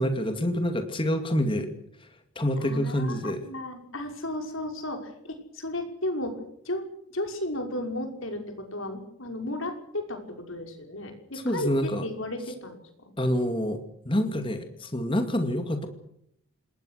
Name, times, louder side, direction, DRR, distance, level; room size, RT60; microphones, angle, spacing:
voice 1, 0.0-1.7 2.0-2.1 2.4-3.4 11.3-12.1 13.2-13.8 14.1-15.9, equal, 25° left, 6 dB, 2.3 m, -27 dB
voice 2, 2.6-6.4 6.6-6.8 7.1-11.7 12.0-12.8 13.1-13.2, left 1 dB, 65° left, 4 dB, 5.8 m, -34 dB
28.0 x 21.0 x 6.6 m, 0.73 s
head